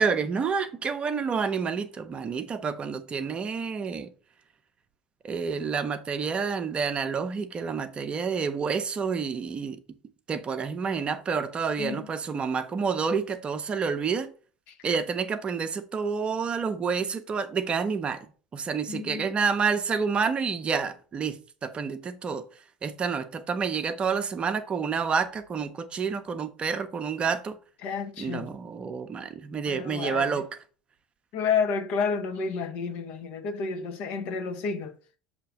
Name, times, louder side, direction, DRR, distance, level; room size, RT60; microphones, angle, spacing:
voice 1, 0.0-4.1 5.2-9.8 10.3-14.3 14.8-18.3 18.5-22.5 22.8-27.6 28.2-30.5, right 5 dB, 30° right, 0.7 m, -29 dB
voice 2, 11.8-12.1 14.7-15.0 18.9-19.3 27.8-28.5 29.7-30.4 31.3-34.9, left 5 dB, 55° left, 0.9 m, -30 dB
6.7 x 2.9 x 5.2 m
figure-of-eight pair, 70°, 3 cm